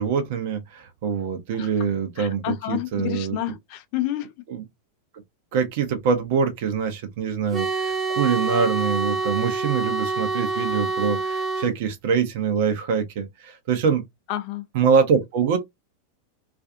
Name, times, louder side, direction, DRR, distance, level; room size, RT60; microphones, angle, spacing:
voice 1, 0.0-3.4 4.5-4.6 5.5-14.0 14.7-15.6, right 6 dB, 50° right, 0.6 m, -24 dB
voice 2, 2.2-4.3 14.3-14.7, left 14 dB, 45° left, 0.5 m, -29 dB
sound 1, 7.5-11.7, right 3 dB, 20° right, 0.8 m, -26 dB
2.4 x 2.4 x 2.5 m
figure-of-eight pair, 90°, 0 cm